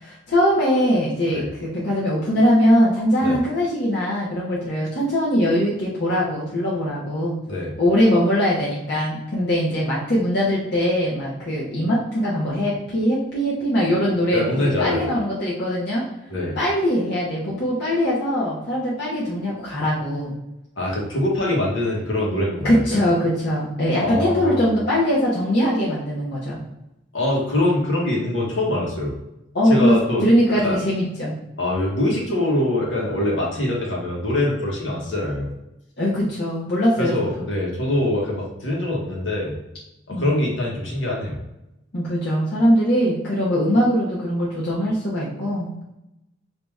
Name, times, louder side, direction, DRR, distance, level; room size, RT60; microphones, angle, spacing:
voice 1, 0.0-7.4 7.8-16.1 16.6-20.4 22.6-26.6 29.5-31.3 36.0-37.5 40.1-40.3 41.9-45.8, equal, 55° left, -7 dB, 0.9 m, -21 dB
voice 2, 14.3-15.1 16.3-16.6 20.8-23.0 24.0-24.7 27.1-29.1 29.6-30.3 30.6-30.8 31.6-35.5 37.0-39.6 40.1-41.4, left 1 dB, 70° left, -3 dB, 1.3 m, -23 dB
3.1 x 2.8 x 3.5 m, 0.90 s
head